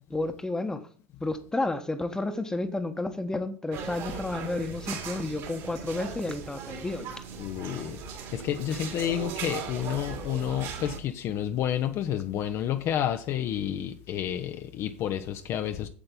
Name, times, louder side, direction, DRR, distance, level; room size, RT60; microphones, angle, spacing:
voice 1, 0.1-0.9 1.2-7.2 8.7-9.0, left 2 dB, 10° left, 1.1 m, -31 dB
sound 1, 3.7-11.0, right 6 dB, 50° right, 2.5 m, -38 dB
voice 2, 7.4-8.0 8.3-15.9, left 10 dB, 45° left, 0.7 m, -30 dB
8.3 x 7.8 x 3.8 m
figure-of-eight pair, 75°, 7 cm